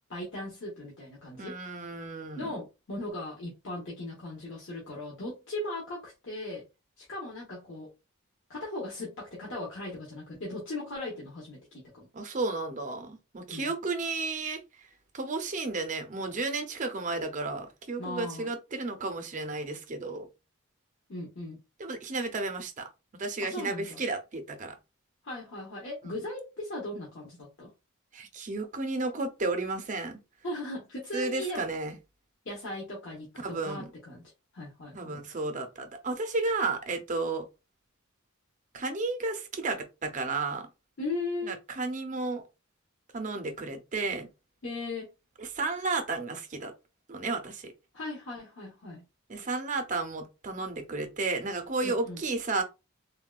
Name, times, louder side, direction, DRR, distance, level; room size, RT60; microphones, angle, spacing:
voice 1, 0.1-1.6 2.4-6.6 7.0-7.9 8.5-12.1 13.5-13.7 18.0-18.5 21.1-21.6 23.4-24.0 25.2-27.7 30.4-31.7 32.4-35.1 41.0-41.6 44.6-45.1 47.9-49.0 51.8-52.2, left 2 dB, 60° left, 1.0 m, -38 dB
voice 2, 1.4-2.5 12.1-14.6 15.1-20.3 21.8-22.9 23.2-24.7 26.0-26.2 28.1-30.2 31.1-32.0 33.4-33.9 34.9-37.5 38.7-40.7 41.4-42.4 43.1-44.3 45.4-46.7 47.1-47.7 49.3-52.6, right 3 dB, 35° right, 0.5 m, -33 dB
3.6 x 2.2 x 2.3 m
head